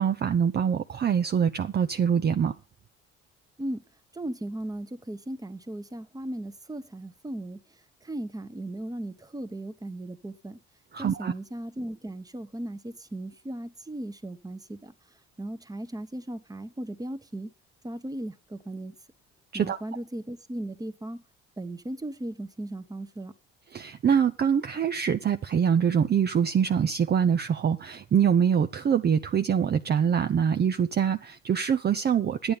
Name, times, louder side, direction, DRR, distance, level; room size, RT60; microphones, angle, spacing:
voice 1, 0.0-2.5 10.9-11.3 19.5-19.8 23.7-32.5, right 7 dB, 35° right, 0.6 m, -24 dB
voice 2, 4.1-7.6 8.0-10.6 11.0-14.9 15.4-17.5 17.8-18.9 19.5-21.2 21.6-23.3, right 1 dB, 10° right, 1.1 m, -37 dB
10.5 x 8.7 x 5.4 m
supercardioid pair, 70°, 30 cm